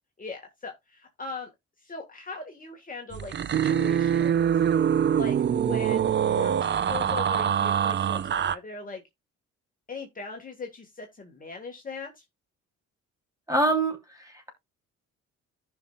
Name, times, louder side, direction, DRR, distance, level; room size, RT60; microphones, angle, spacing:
voice 1, 0.2-1.5 1.8-4.5 5.1-9.0 9.9-12.2, left 3 dB, 30° left, 1.7 m, -40 dB
sound 1, 3.1-8.6, right 9 dB, 40° right, 0.5 m, -24 dB
voice 2, 13.5-14.5, right 2 dB, 10° right, 3.2 m, -26 dB
14.5 x 5.8 x 2.3 m
cardioid pair, 90°, 30 cm